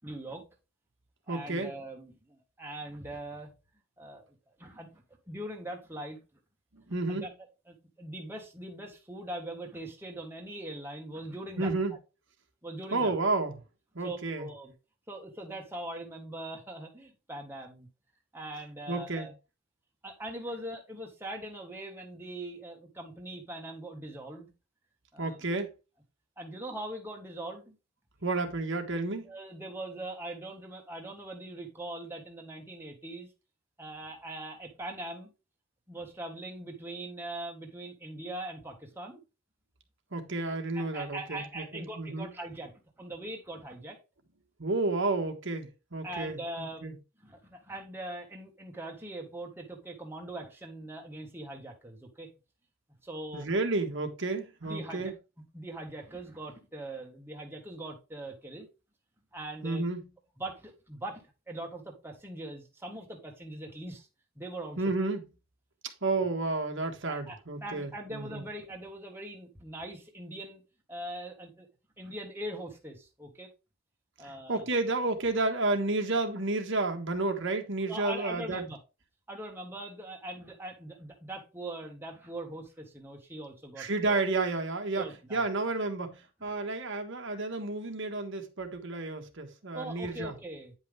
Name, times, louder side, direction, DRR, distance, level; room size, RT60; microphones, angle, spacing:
voice 1, 0.0-0.4 1.3-3.5 4.0-6.2 7.1-7.3 7.6-12.0 12.6-13.1 14.0-14.7 15.1-17.9 18.3-19.3 20.0-24.5 25.1-25.4 26.4-27.8 29.2-33.3 33.8-35.3 35.9-39.2 40.5-42.7 43.0-44.0 46.0-52.3 53.0-53.5 54.6-55.1 55.5-58.7 59.3-59.8 60.4-64.1 64.3-64.8 66.2-66.3 67.1-70.6 70.9-71.7 72.0-73.5 74.2-74.6 77.9-78.8 79.3-84.2 84.9-85.4 86.4-86.5 89.7-90.7, right 1 dB, 10° right, 1.5 m, -41 dB
voice 2, 1.3-1.7 6.7-7.3 11.6-11.9 12.9-13.5 13.9-14.5 18.9-19.3 25.2-25.7 28.2-29.3 40.1-42.3 44.6-46.9 53.3-55.1 59.6-60.0 64.8-65.2 66.0-68.4 74.2-78.6 83.8-90.3, right 3 dB, 55° right, 1.5 m, -31 dB
9.6 x 5.6 x 3.4 m
head